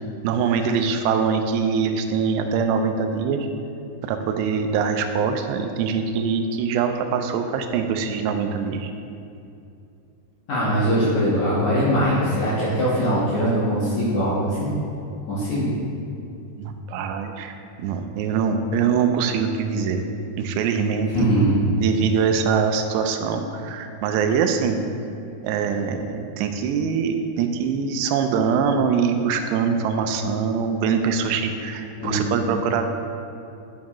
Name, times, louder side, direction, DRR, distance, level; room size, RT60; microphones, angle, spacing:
voice 1, 0.2-3.5 4.0-8.9 16.6-20.0 20.4-21.3 21.8-24.8 25.4-32.9, right 6 dB, 90° right, 6 dB, 2.7 m, -23 dB
voice 2, 10.5-14.7 15.3-15.7 21.1-21.6 32.0-32.3, equal, 60° left, -9 dB, 2.2 m, -21 dB
9.4 x 7.3 x 3.0 m, 2.6 s
omnidirectional pair, 4.8 m